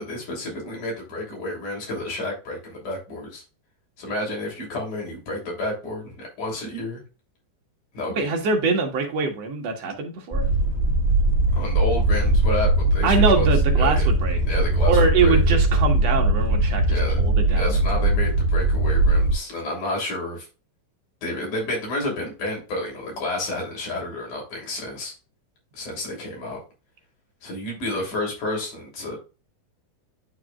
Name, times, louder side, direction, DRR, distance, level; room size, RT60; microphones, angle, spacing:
voice 1, 0.0-3.4 4.0-7.0 7.9-8.3 11.6-13.5 13.8-15.4 16.9-17.2 17.5-20.5 21.2-25.1 25.7-26.6 27.4-29.2, left 2 dB, 65° left, -2 dB, 4.7 m, -30 dB
voice 2, 8.1-10.5 13.0-14.4 14.9-17.7, right 4 dB, 55° right, 2 dB, 2.4 m, -23 dB
sound 1, 10.3-19.3, right 2 dB, 20° right, 1.5 m, -20 dB
10.5 x 4.8 x 2.4 m, 0.31 s
omnidirectional pair, 4.0 m